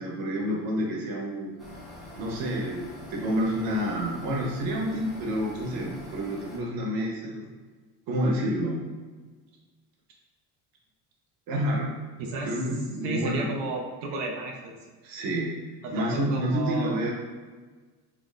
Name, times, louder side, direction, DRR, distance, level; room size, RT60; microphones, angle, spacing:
voice 1, 0.0-1.6 2.2-7.5 8.1-8.8 11.5-12.0 12.4-13.5 15.0-15.6 15.9-17.2, equal, 60° right, -1 dB, 1.2 m, -29 dB
sound 1, 1.6-6.6, left 1 dB, ahead, 1.1 m, -45 dB
voice 2, 13.0-14.8 15.8-17.0, right 3 dB, 80° right, 1 dB, 0.8 m, -33 dB
5.4 x 3.3 x 2.6 m, 1.4 s
cardioid pair, 130°, 40 cm